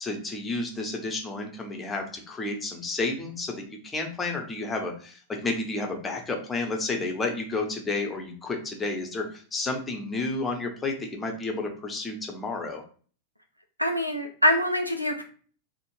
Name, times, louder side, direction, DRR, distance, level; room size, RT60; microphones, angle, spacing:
voice 1, 0.0-12.8, left 3 dB, 15° left, 2 dB, 0.7 m, -31 dB
voice 2, 13.8-15.2, equal, 90° right, 5 dB, 0.3 m, -24 dB
2.4 x 2.1 x 3.1 m, 0.42 s
figure-of-eight pair, 90°, 0 cm